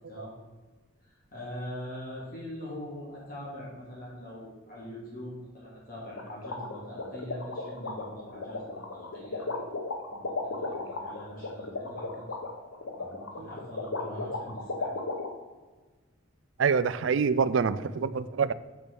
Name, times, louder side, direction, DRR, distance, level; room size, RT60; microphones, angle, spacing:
voice 1, 1.0-9.5 10.1-12.2 12.9-15.0, left 1 dB, 40° left, -6 dB, 2.5 m, -42 dB
sound 1, 6.2-15.3, left 3 dB, 75° left, 1.1 m, -35 dB
voice 2, 16.6-18.5, right 5 dB, 60° right, 15 dB, 0.4 m, -26 dB
6.2 x 6.1 x 6.1 m, 1.3 s
head